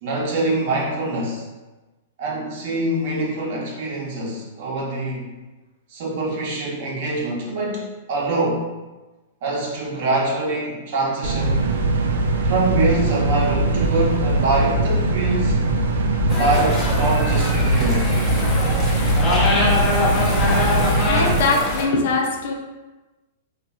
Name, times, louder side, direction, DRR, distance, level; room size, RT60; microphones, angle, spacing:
voice 1, 0.0-1.5 2.2-5.3 5.9-8.7 9.4-11.7 12.4-15.6 16.2-18.1, right 2 dB, 55° right, -3 dB, 0.9 m, -24 dB
sound 1, 11.2-21.4, right 2 dB, 70° right, 0.4 m, -20 dB
sound 2, 16.3-21.8, left 2 dB, 20° left, 0.8 m, -23 dB
voice 2, 21.0-22.5, left 3 dB, 60° left, 2 dB, 0.5 m, -21 dB
4.0 x 2.4 x 2.3 m, 1.2 s
hypercardioid pair, 110°, 0 cm